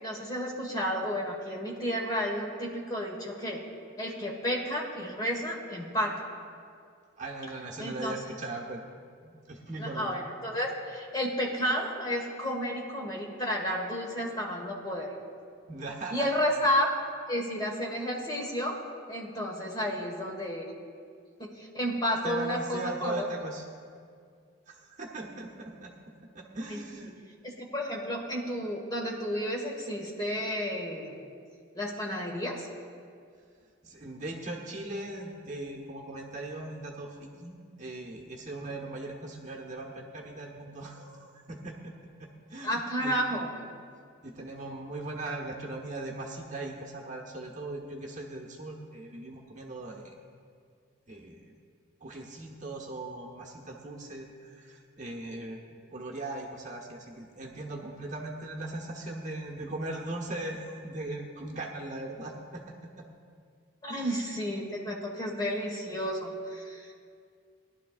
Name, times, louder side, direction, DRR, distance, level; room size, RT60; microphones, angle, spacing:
voice 1, 0.0-3.6 4.0-6.1 7.8-8.1 9.8-15.1 16.1-16.9 17.3-18.8 19.1-20.7 21.4-23.3 26.7-26.8 27.4-31.1 31.7-32.7 42.6-43.5 63.8-66.9, equal, 20° left, -2 dB, 1.5 m, -31 dB
voice 2, 7.2-8.8 9.2-10.2 15.7-16.3 22.2-23.7 24.7-27.1 33.8-43.1 44.2-50.1 51.1-51.4 52.0-63.0 63.9-64.3, right 2 dB, 35° right, -2 dB, 1.2 m, -39 dB
19.5 x 11.5 x 2.5 m, 2.2 s
head